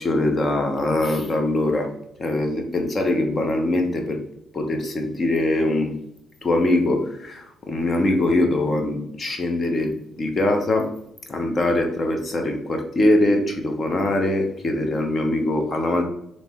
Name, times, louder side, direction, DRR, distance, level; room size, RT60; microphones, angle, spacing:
voice 1, 0.0-1.9 2.2-4.2 4.5-6.0 6.4-10.9 11.3-16.0, left 1 dB, 40° left, 4 dB, 1.0 m, -22 dB
3.3 x 3.1 x 4.3 m, 0.77 s
cardioid pair, 90°, 0 cm